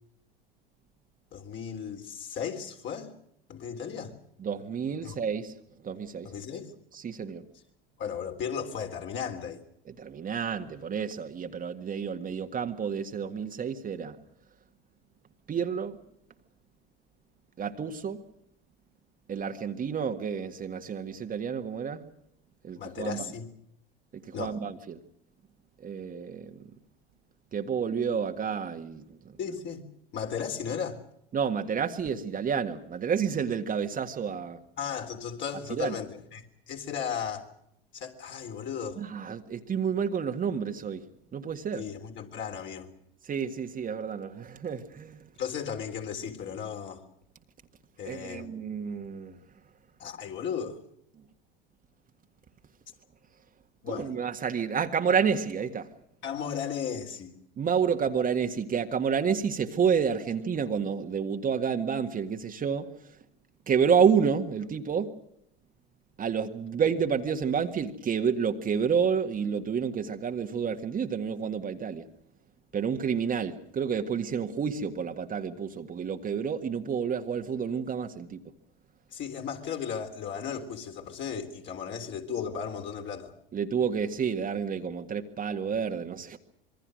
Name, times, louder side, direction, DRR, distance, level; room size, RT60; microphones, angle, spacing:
voice 1, 1.3-3.1 3.5-4.2 5.0-5.1 6.2-6.7 8.0-9.6 22.7-23.5 24.3-24.5 29.4-29.9 30.1-31.0 34.8-37.5 37.9-39.0 41.7-42.9 45.4-47.0 48.0-48.5 50.0-50.8 53.8-54.1 56.2-57.4 79.1-83.3, left 7 dB, 40° left, 3.5 m, -35 dB
voice 2, 4.4-5.6 5.8-6.3 6.9-7.4 9.8-14.2 15.5-16.0 17.6-18.2 19.3-22.1 22.6-23.3 24.1-25.0 25.8-26.6 27.5-29.2 31.3-34.6 35.8-35.9 39.0-41.0 41.3-41.8 43.2-45.2 48.0-49.4 53.9-55.9 57.6-62.9 63.7-65.1 66.2-72.0 72.7-78.4 83.5-86.4, right 6 dB, 30° right, 1.8 m, -29 dB
26.5 x 22.5 x 6.4 m
hypercardioid pair, 80°, 29 cm